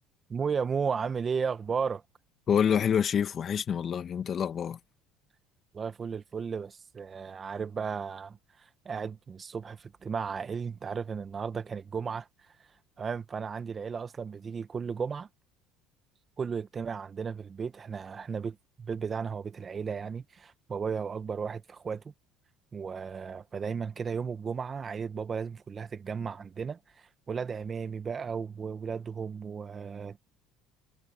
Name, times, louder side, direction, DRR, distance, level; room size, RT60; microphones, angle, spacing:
voice 1, 0.3-2.0 5.7-12.3 13.0-15.3 16.4-22.0 22.7-30.2, right 6 dB, 35° right, 1.5 m, -34 dB
voice 2, 2.5-4.8, left 8 dB, 45° left, 2.2 m, -27 dB
hypercardioid pair, 80°, 0 cm